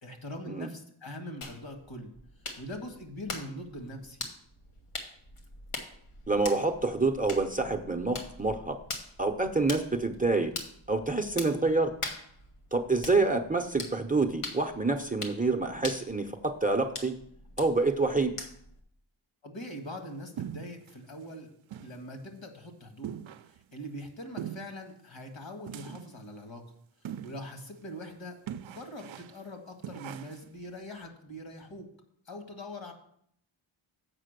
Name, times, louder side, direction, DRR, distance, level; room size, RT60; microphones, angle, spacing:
voice 1, 0.0-2.1 2.6-4.2 19.4-21.5 21.8-23.2 23.4-26.6 27.2-28.4 28.7-31.9 32.3-32.9, left 1 dB, 60° left, 3 dB, 1.9 m, -42 dB
sound 1, 1.4-18.8, left 3 dB, 90° left, 1.4 m, -43 dB
voice 2, 6.3-8.8 9.2-10.5 10.9-11.9 12.7-17.1 17.6-18.3, right 3 dB, 15° right, 6 dB, 0.6 m, -27 dB
sound 2, 20.4-20.9 21.3-21.4 21.7-22.0 22.3-22.4 23.0-23.6 24.4-24.8 25.7-26.2 27.0-27.5 27.8-27.9 28.5-29.4 29.8-30.5, right 10 dB, 70° right, 0.5 m, -41 dB
7.6 x 5.5 x 6.6 m, 0.66 s
wide cardioid pair, 95°, 50 cm